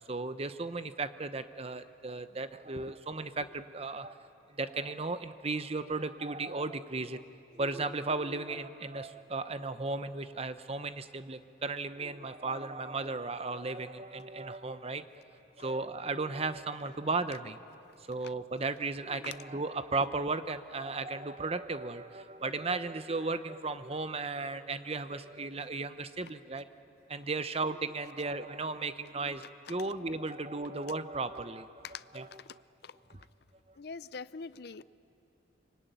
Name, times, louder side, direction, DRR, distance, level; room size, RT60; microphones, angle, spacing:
voice 1, 0.1-7.2 7.5-15.1 15.6-17.6 18.1-26.7 27.1-29.4 29.7-31.7 32.1-32.3 33.1-33.2, right 3 dB, 30° right, 11 dB, 0.8 m, -35 dB
voice 2, 33.8-34.8, left 5 dB, 55° left, 16 dB, 0.6 m, -43 dB
24.5 x 24.5 x 9.2 m, 2.7 s
head